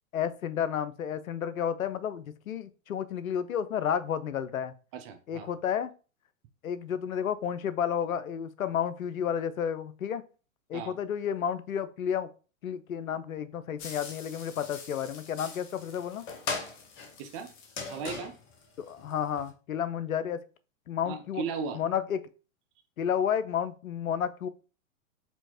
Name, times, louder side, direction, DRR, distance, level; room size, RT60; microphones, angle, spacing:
voice 1, 0.1-4.7 5.3-5.9 6.6-10.2 10.7-12.3 12.6-16.2 18.8-20.4 20.9-21.4 21.7-22.2 23.0-24.5, left 8 dB, 90° left, 0.5 m, -31 dB
voice 2, 4.9-5.5 10.7-11.0 17.2-17.5 17.9-18.4 21.1-21.8, right 5 dB, 25° right, 0.4 m, -36 dB
sound 1, 13.8-19.5, left 4 dB, 30° left, 0.9 m, -41 dB
4.3 x 2.7 x 2.8 m
hypercardioid pair, 110°, 41 cm